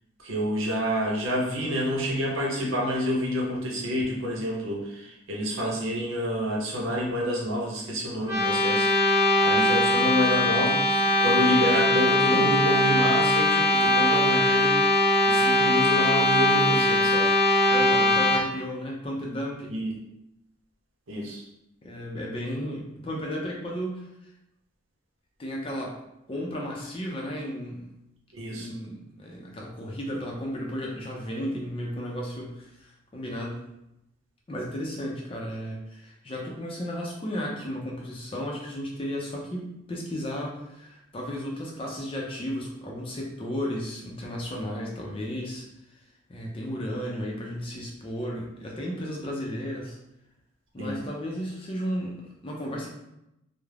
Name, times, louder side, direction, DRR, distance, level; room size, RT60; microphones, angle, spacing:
voice 1, 0.2-14.9 15.3-17.3 19.7-20.0 21.1-21.4 28.3-28.7 50.8-51.0, equal, 90° right, -2 dB, 0.7 m, -28 dB
sound 1, 8.3-18.4, left 1 dB, 15° right, 0.9 m, -21 dB
voice 2, 12.0-12.5 17.7-19.8 21.8-24.1 25.4-26.0 26.3-27.9 28.6-33.7 34.5-45.6 46.3-50.0 50.7-52.9, equal, 25° left, -1 dB, 0.4 m, -34 dB
2.3 x 2.0 x 3.1 m, 0.86 s
head